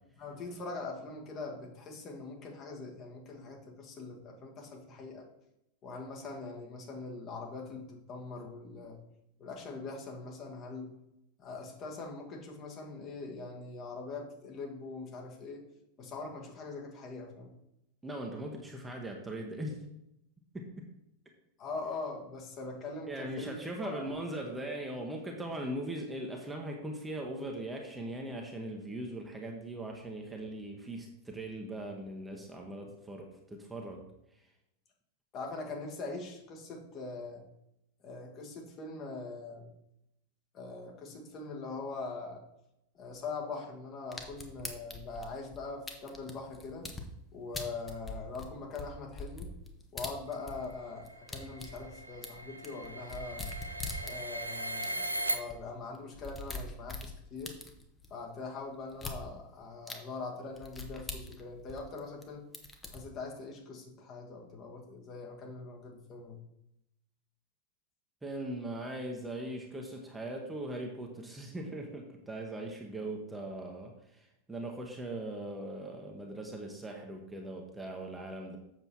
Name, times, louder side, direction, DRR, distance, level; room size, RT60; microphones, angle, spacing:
voice 1, 0.2-5.3 5.8-9.0 9.4-10.9 11.4-15.7 16.0-17.5 21.6-24.2 35.3-37.4 38.0-39.7 40.5-42.4 42.9-46.9 47.3-49.5 49.9-53.5 54.0-57.6 58.1-62.5 62.9-66.4, left 3 dB, 30° left, 1 dB, 1.9 m, -42 dB
voice 2, 18.0-19.8 20.5-20.9 23.1-34.0 68.2-78.6, right 1 dB, 10° right, 1 dB, 1.3 m, -40 dB
sound 1, 44.1-47.1 47.5-50.8 51.0-54.4 54.8-54.9 55.1-55.2 55.5-55.6 55.9-58.1 58.9-59.2 59.9-60.0 60.6-62.2 62.5-63.0, left 3 dB, 15° left, 1.2 m, -42 dB
sound 2, 50.6-55.4, right 1 dB, 85° right, 0.7 m, -38 dB
8.0 x 6.8 x 4.4 m, 0.83 s
figure-of-eight pair, 90°, 0 cm